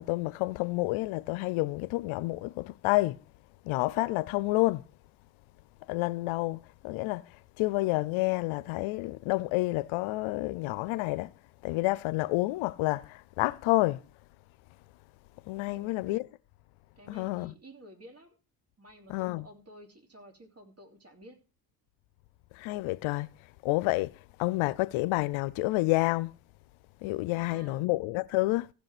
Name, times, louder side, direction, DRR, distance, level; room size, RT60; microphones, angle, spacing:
voice 1, 0.0-3.2 3.6-4.8 5.9-11.3 11.6-14.0 15.5-16.2 17.1-17.5 19.1-19.5 22.5-23.3 23.6-26.3 27.0-28.7, left 20 dB, 85° left, 0.6 m, -29 dB
voice 2, 15.7-16.0 17.0-18.4 18.8-21.4 27.3-27.9, equal, 30° right, 3.1 m, -52 dB
15.5 x 5.3 x 6.0 m
supercardioid pair, 65°, 47 cm